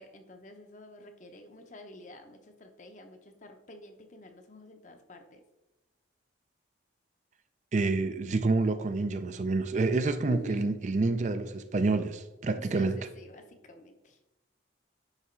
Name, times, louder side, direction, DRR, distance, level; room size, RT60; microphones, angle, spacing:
voice 1, 0.0-5.4 10.3-10.7 12.6-14.2, left 1 dB, 40° left, 6 dB, 0.8 m, -48 dB
voice 2, 7.7-13.0, right 3 dB, 40° right, 10 dB, 0.4 m, -28 dB
9.9 x 3.4 x 4.4 m, 1.0 s
head